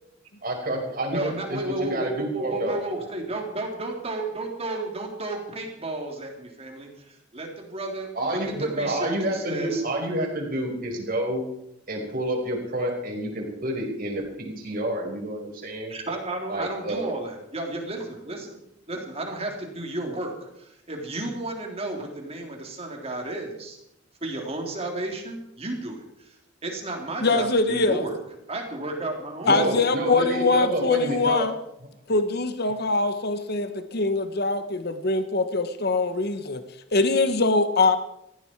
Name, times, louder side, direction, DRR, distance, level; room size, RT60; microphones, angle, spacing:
voice 1, 0.4-2.7 8.1-11.4 11.9-15.9 16.5-17.1 29.4-31.4, right 1 dB, 50° right, 0 dB, 5.2 m, -28 dB
voice 2, 1.1-6.9 7.3-9.8 15.9-18.6 18.9-23.8 24.2-26.4 26.6-28.2 28.5-29.7, right 2 dB, 35° right, 1 dB, 3.6 m, -33 dB
voice 3, 27.2-28.1 29.5-31.5 32.1-36.6 36.9-38.0, left 3 dB, 55° left, 9 dB, 1.3 m, -23 dB
19.5 x 15.5 x 4.7 m, 0.79 s
head